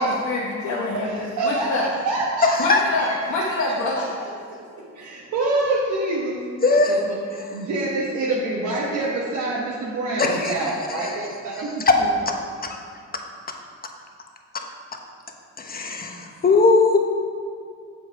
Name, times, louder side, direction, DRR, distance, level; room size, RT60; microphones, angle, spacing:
voice 1, 0.0-1.9 2.6-4.1, left 2 dB, 70° left, -4 dB, 1.3 m, -26 dB
voice 2, 1.0-2.5 3.0-3.7 4.5-4.6 4.9-7.2 7.5-11.9, right 2 dB, 75° right, -5 dB, 1.3 m, -26 dB
voice 3, 2.4-2.8 6.6-7.0 7.3-7.5 10.2-11.2 11.9-12.0 12.3-12.4 12.6-12.8 14.5-14.6 15.6-17.0, left 3 dB, 30° left, 3 dB, 1.1 m, -20 dB
7.7 x 7.1 x 4.7 m, 2.3 s
cardioid pair, 90°, 30 cm